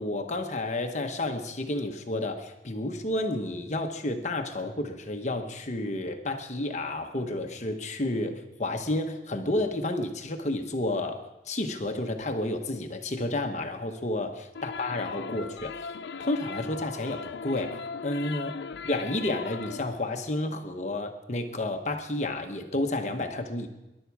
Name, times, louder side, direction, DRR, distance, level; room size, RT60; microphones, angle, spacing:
voice 1, 0.0-15.9 16.2-17.8 18.0-18.5 18.9-23.7, left 1 dB, 40° left, 5 dB, 1.0 m, -31 dB
sound 1, 14.5-20.0, left 5 dB, 85° left, 0.5 m, -38 dB
22.5 x 11.5 x 4.7 m, 1.0 s
head